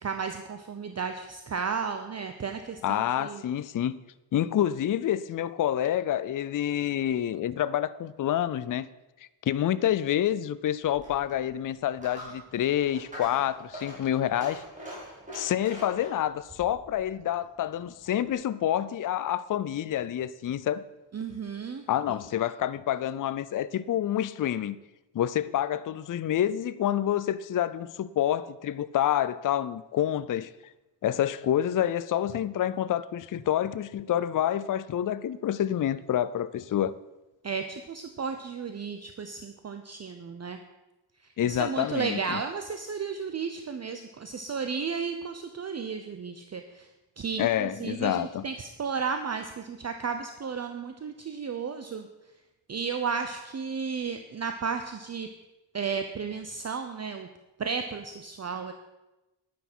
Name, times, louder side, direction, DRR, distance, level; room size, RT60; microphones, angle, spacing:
voice 1, 0.0-3.4 21.1-21.8 37.4-40.6 41.2-46.9 47.2-52.1 52.7-55.3 55.7-57.3 57.6-58.7, right 5 dB, 35° right, 0.7 m, -33 dB
voice 2, 2.8-4.0 4.3-8.9 9.4-14.6 15.3-20.8 21.9-24.8 25.1-30.5 31.0-37.0 41.4-42.4 47.4-48.4, left 11 dB, 50° left, 0.4 m, -28 dB
Coin (dropping), 10.8-18.3, equal, 15° right, 4.9 m, -45 dB
10.5 x 9.5 x 6.1 m
wide cardioid pair, 160°, 43 cm